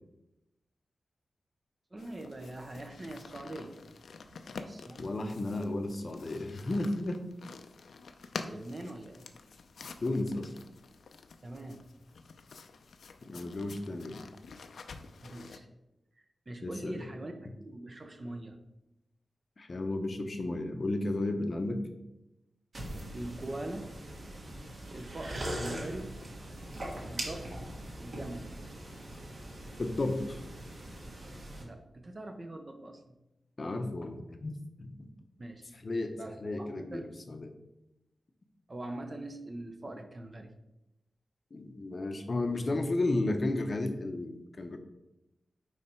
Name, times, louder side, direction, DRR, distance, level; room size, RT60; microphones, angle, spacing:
voice 1, 1.9-3.8 4.3-5.8 8.5-9.2 11.4-11.8 15.2-15.7 16.2-18.6 23.1-23.9 24.9-26.1 27.0-27.6 28.0-28.5 31.6-33.1 35.4-35.7 36.1-37.1 38.7-40.5, right 1 dB, 30° right, 5 dB, 0.7 m, -43 dB
sound 1, 2.0-15.6, left 4 dB, 85° left, 0.5 m, -48 dB
voice 2, 5.0-7.2 10.0-10.5 13.2-14.3 16.6-17.0 19.6-21.8 29.8-30.4 33.6-34.9 35.8-37.5 41.5-44.8, left 2 dB, 40° left, 6 dB, 0.7 m, -33 dB
sound 2, 22.7-31.6, right 1 dB, 50° right, 1.5 m, -41 dB
9.2 x 3.3 x 4.4 m, 0.92 s
wide cardioid pair, 135°, 0 cm